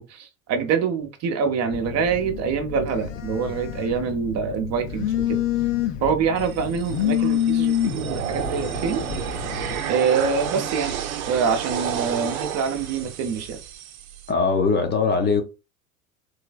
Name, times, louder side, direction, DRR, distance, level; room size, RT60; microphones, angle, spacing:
voice 1, 0.1-5.4 6.0-9.0 9.9-11.0 11.3-13.6, right 6 dB, 35° right, 0.8 m, -25 dB
Telephone, 1.7-9.8, left 10 dB, 65° left, 0.7 m, -27 dB
sound 1, 6.4-14.3, right 9 dB, 75° right, 0.8 m, -31 dB
voice 2, 14.3-15.4, left 4 dB, 25° left, 0.6 m, -21 dB
3.3 x 3.1 x 2.3 m
hypercardioid pair, 85°, 43 cm